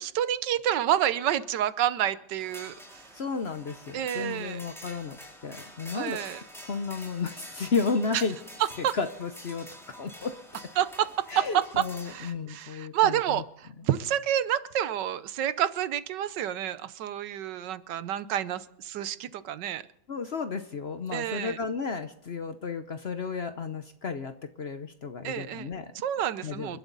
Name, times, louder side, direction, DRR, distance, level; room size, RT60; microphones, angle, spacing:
voice 1, 0.0-3.0 3.9-4.6 5.9-6.4 8.1-8.2 8.8-8.9 10.8-19.8 21.1-21.6 25.2-25.7 25.9-26.8, right 11 dB, 80° right, 15 dB, 1.4 m, -29 dB
sound 1, 2.4-12.3, equal, ahead, 4.8 m, -47 dB
voice 2, 3.1-5.2 5.4-6.2 6.7-8.3 8.9-9.7 10.0-10.4 11.3-13.4 20.1-25.9 26.4-26.7, left 4 dB, 50° left, 9 dB, 0.8 m, -33 dB
29.0 x 11.5 x 4.0 m, 0.76 s
omnidirectional pair, 1.9 m